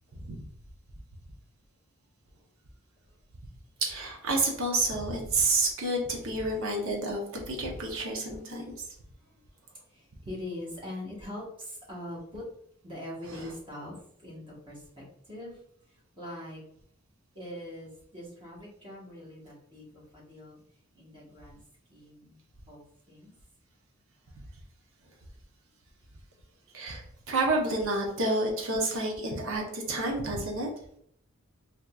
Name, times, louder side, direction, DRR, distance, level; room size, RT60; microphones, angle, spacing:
voice 1, 3.8-8.6 13.3-13.5 26.7-30.7, right 2 dB, 60° right, 1 dB, 0.7 m, -29 dB
voice 2, 9.9-12.4 12.8-15.6 16.2-16.6 17.3-20.6 20.9-21.6 21.9-22.4 22.7-23.3, left 1 dB, 25° right, -5 dB, 1.2 m, -42 dB
3.6 x 2.8 x 2.3 m, 0.67 s
head